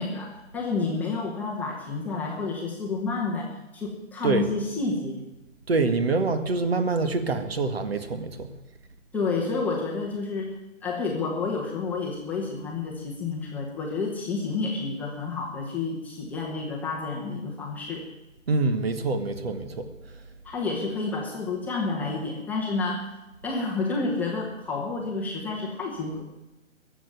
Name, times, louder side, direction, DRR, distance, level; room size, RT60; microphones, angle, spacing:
voice 1, 0.0-5.3 9.1-18.1 20.4-23.1 23.4-26.2, left 3 dB, 5° left, -3 dB, 1.1 m, -30 dB
voice 2, 5.7-8.5 18.5-19.9, right 3 dB, 50° right, 10 dB, 1.8 m, -25 dB
21.0 x 7.3 x 9.4 m, 1.0 s
figure-of-eight pair, 140°, 39 cm